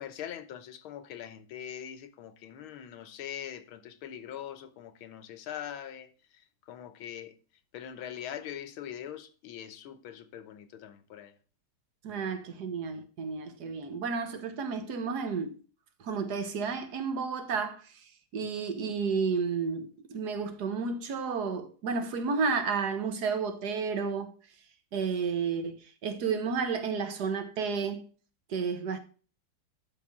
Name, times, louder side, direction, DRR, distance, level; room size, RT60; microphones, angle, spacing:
voice 1, 0.0-6.1 6.7-7.3 7.7-11.4 12.1-12.2 18.4-18.5, left 10 dB, 85° left, 1.8 m, -42 dB
voice 2, 12.0-15.6 16.0-17.9 18.3-24.3 24.9-28.0 28.5-29.0, right 5 dB, 55° right, 1.6 m, -31 dB
11.5 x 5.1 x 3.6 m
omnidirectional pair, 2.2 m